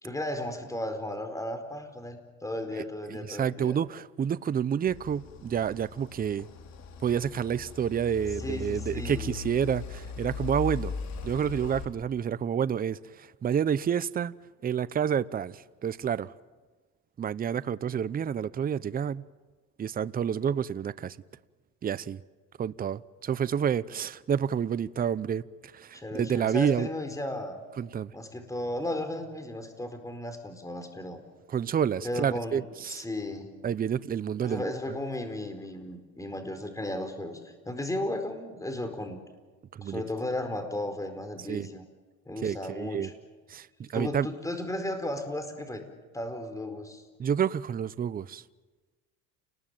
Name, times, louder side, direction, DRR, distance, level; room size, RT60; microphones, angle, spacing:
voice 1, 0.0-3.8 8.4-9.3 25.9-27.6 28.1-31.2 32.0-32.6 32.9-33.5 34.4-39.2 39.8-41.8 42.3-43.1 43.9-45.8 46.1-47.0, left 1 dB, 10° left, 4.6 m, -35 dB
voice 2, 2.7-6.5 7.0-10.9 11.2-14.3 14.6-16.3 17.2-19.2 19.8-21.2 21.8-22.2 22.6-25.5 25.7-26.9 27.8-28.1 31.5-33.0 33.6-34.7 39.7-40.0 41.5-41.7 42.4-43.1 43.5-44.3 47.2-48.4, right 8 dB, 30° right, 0.7 m, -29 dB
sound 1, 4.9-11.9, left 6 dB, 55° left, 4.0 m, -39 dB
29.5 x 20.0 x 9.2 m
supercardioid pair, 100°, 32 cm